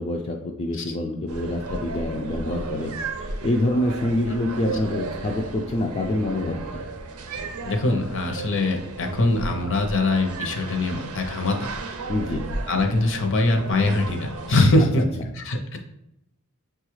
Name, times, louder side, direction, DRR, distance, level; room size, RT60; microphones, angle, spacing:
voice 1, 0.0-2.9 3.2-6.8 12.1-12.4 15.0-15.1, left 1 dB, 30° left, 1 dB, 0.3 m, -26 dB
sound 1, 1.3-14.6, right 3 dB, 90° right, 0.5 m, -34 dB
voice 2, 7.6-11.7 12.7-15.0 15.3-15.8, left 2 dB, 60° left, 4 dB, 0.6 m, -22 dB
6.2 x 2.3 x 3.0 m, 0.81 s
head